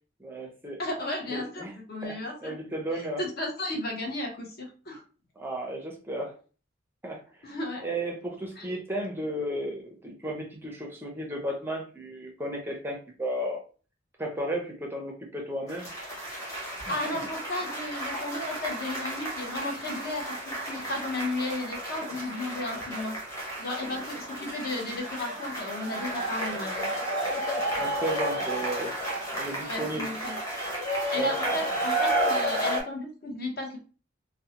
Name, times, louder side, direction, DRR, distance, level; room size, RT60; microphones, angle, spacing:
voice 1, 0.2-0.8 1.3-1.7 2.0-3.2 5.4-6.4 7.0-7.2 7.8-13.6 14.2-15.9 27.8-28.9 29.3-30.1 31.1-31.3, right 1 dB, 10° right, 0 dB, 0.4 m, -34 dB
voice 2, 0.8-2.6 3.2-5.0 7.4-7.9 8.6-8.7 16.9-23.1 23.6-26.9 29.6-30.3 31.1-33.8, left 2 dB, 50° left, 1 dB, 0.7 m, -34 dB
sound 1, 15.7-32.8, right 1 dB, 15° left, 0.9 m, -32 dB
2.6 x 2.0 x 2.8 m, 0.37 s
head